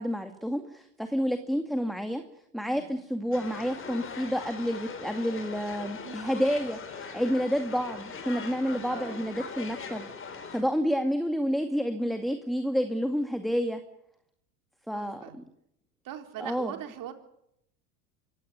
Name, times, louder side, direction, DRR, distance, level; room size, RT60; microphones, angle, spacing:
voice 1, 0.0-2.2 2.5-13.8 14.9-15.2 16.4-16.7, equal, ahead, 7 dB, 2.1 m, -29 dB
voice 2, 2.6-3.0 5.9-6.2 8.7-9.3 14.9-15.4 16.0-17.1, right 10 dB, 45° right, 6 dB, 4.2 m, -41 dB
sound 1, 3.3-10.6, left 5 dB, 25° left, 4.8 m, -41 dB
25.0 x 17.0 x 9.9 m, 0.76 s
hypercardioid pair, 100°, 45 cm